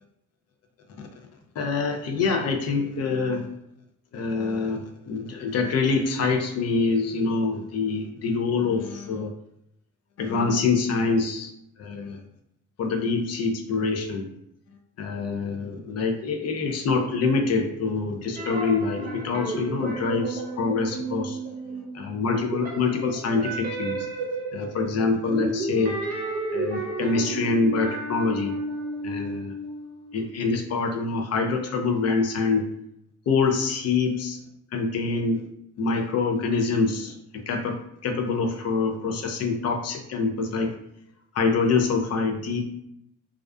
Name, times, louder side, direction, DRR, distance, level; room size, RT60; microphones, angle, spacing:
voice 1, 1.6-3.5 4.1-9.3 10.2-11.5 11.8-12.2 12.8-14.3 15.0-21.4 21.9-24.1 24.5-26.0 26.5-28.5 29.0-29.5 30.1-32.6 33.3-34.4 34.7-35.4 35.8-40.7 41.3-42.6, left 4 dB, 50° left, 3 dB, 0.5 m, -25 dB
sound 1, 18.4-22.1 22.4-30.2, right 2 dB, 30° right, 0.7 m, -32 dB
2.4 x 2.3 x 2.2 m, 0.75 s
cardioid pair, 105°, 32 cm